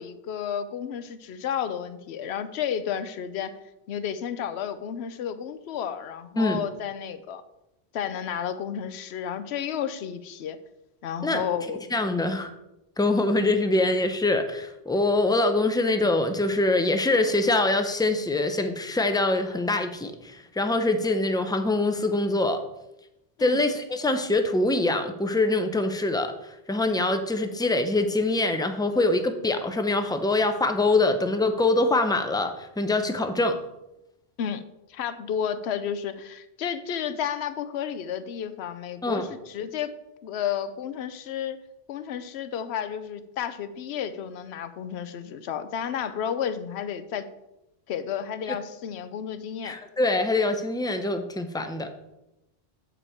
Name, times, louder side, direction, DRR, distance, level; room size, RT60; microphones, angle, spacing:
voice 1, 0.0-3.6 3.9-7.4 7.9-10.6 11.0-11.8 23.4-23.6 34.4-34.6 34.9-39.9 40.2-47.3 47.9-49.8, left 8 dB, 80° left, 12 dB, 0.9 m, -32 dB
voice 2, 11.9-12.5 13.0-22.6 23.4-26.3 26.7-33.5 39.0-39.4 48.5-48.6 49.6-51.9, left 2 dB, 5° left, 7 dB, 0.4 m, -24 dB
7.9 x 5.2 x 4.4 m, 0.91 s
omnidirectional pair, 1.1 m